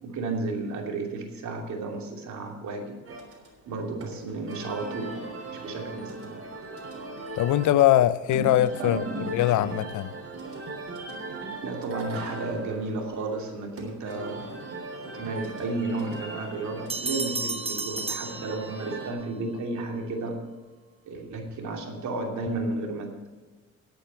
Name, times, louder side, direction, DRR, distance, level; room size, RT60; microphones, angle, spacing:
voice 1, 0.0-3.0 3.7-5.2 5.5-6.4 8.3-8.5 8.8-9.3 11.6-14.6 15.0-20.4 21.0-23.3, right 2 dB, 70° right, 2.8 m, -33 dB
sound 1, 3.1-19.1, right 2 dB, 45° right, 3.5 m, -40 dB
voice 2, 7.3-10.1, left 13 dB, 75° left, 0.6 m, -22 dB
sound 2, 16.9-19.1, right 3 dB, 20° right, 1.0 m, -32 dB
11.0 x 8.5 x 6.9 m
cardioid pair, 90°, 30 cm